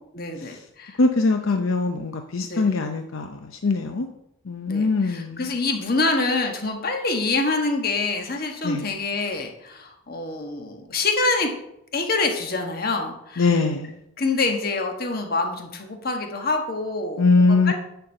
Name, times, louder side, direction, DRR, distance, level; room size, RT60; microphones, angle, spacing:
voice 1, 0.1-1.0 1.4-1.6 2.4-2.7 4.7-11.5 11.9-13.6 14.2-17.7, left 3 dB, 45° left, 4 dB, 1.3 m, -26 dB
voice 2, 1.0-4.1 4.5-5.5 8.6-8.8 13.4-13.9 17.2-17.7, left 3 dB, 70° left, 5 dB, 0.6 m, -21 dB
10.5 x 4.5 x 6.4 m, 0.80 s
head